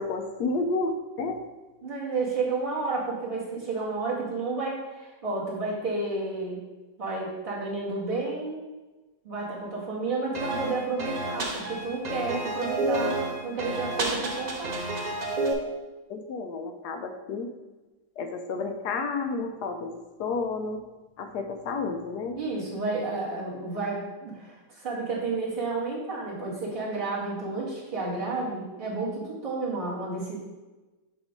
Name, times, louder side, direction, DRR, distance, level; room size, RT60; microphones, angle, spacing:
voice 1, 0.0-1.4 16.1-17.5 18.2-20.9 21.2-22.4, left 3 dB, 75° left, 6 dB, 1.1 m, -31 dB
voice 2, 1.8-6.6 7.0-8.6 9.2-14.9 22.4-30.3, right 3 dB, 30° right, -8 dB, 2.1 m, -31 dB
sound 1, 10.3-15.5, right 2 dB, 80° right, 0.3 m, -30 dB
7.9 x 3.0 x 4.9 m, 1.2 s
omnidirectional pair, 1.9 m